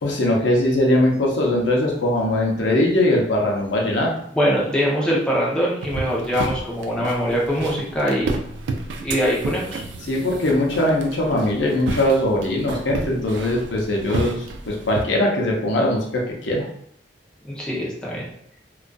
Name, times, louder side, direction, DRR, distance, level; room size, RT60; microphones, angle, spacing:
voice 1, 0.0-4.1 10.1-16.7, left 1 dB, 90° left, -1 dB, 0.6 m, -21 dB
voice 2, 4.3-8.4 9.0-9.8 17.5-18.3, equal, 5° left, -5 dB, 0.5 m, -22 dB
sound 1, 5.8-15.0, right 3 dB, 85° right, 0.3 m, -31 dB
2.5 x 2.3 x 2.2 m, 0.67 s
head